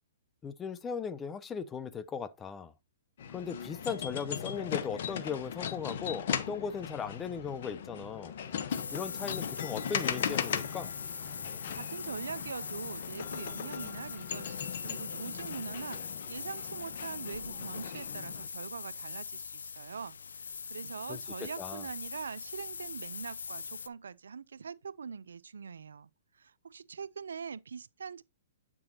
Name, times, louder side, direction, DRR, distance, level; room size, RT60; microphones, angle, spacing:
voice 1, 0.4-2.7 3.3-8.3 8.9-10.9 21.1-21.2 21.6-21.8, left 6 dB, 15° left, 0.6 m, -38 dB
sound 1, 3.2-18.5, left 8 dB, 60° left, 1.0 m, -38 dB
sound 2, 8.1-16.1, right 1 dB, ahead, 2.3 m, -63 dB
sound 3, 8.7-23.9, left 5 dB, 85° left, 0.4 m, -42 dB
voice 2, 11.4-26.1 26.3-28.2, right 6 dB, 80° right, 0.4 m, -43 dB
8.7 x 6.1 x 2.8 m
hypercardioid pair, 130°, 0 cm